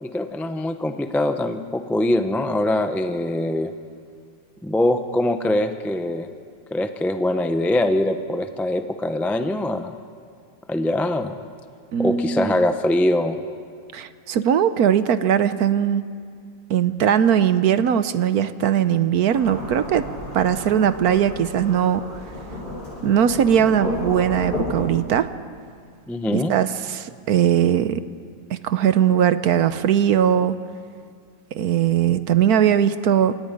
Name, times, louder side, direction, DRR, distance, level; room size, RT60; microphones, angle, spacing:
voice 1, 0.0-3.7 4.6-6.3 6.7-10.0 10.7-11.3 12.0-13.4 26.1-26.5, left 1 dB, ahead, 7 dB, 0.5 m, -23 dB
voice 2, 11.9-12.6 13.9-16.0 16.7-20.1 20.3-22.0 23.0-25.3 26.3-28.0 28.5-30.6 31.5-33.4, right 9 dB, 70° right, 12 dB, 1.2 m, -20 dB
Thunderstorm / Rain, 19.3-25.0, left 1 dB, 90° left, 8.8 m, -32 dB
29.5 x 26.0 x 5.3 m, 2.1 s
omnidirectional pair, 1.7 m